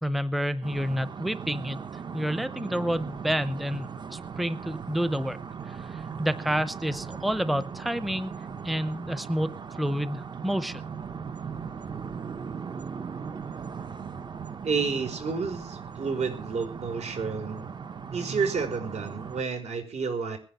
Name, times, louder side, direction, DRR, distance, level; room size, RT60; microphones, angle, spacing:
voice 1, 0.0-1.8 2.1-5.4 5.7-8.3 8.6-10.8, equal, ahead, 13 dB, 0.7 m, -29 dB
sound 1, 0.6-19.4, right 6 dB, 40° right, 0.9 m, -38 dB
voice 2, 14.6-17.7 18.1-20.4, right 5 dB, 70° right, 6 dB, 5.0 m, -30 dB
20.0 x 10.0 x 6.6 m, 0.37 s
wide cardioid pair, 165°, 12 cm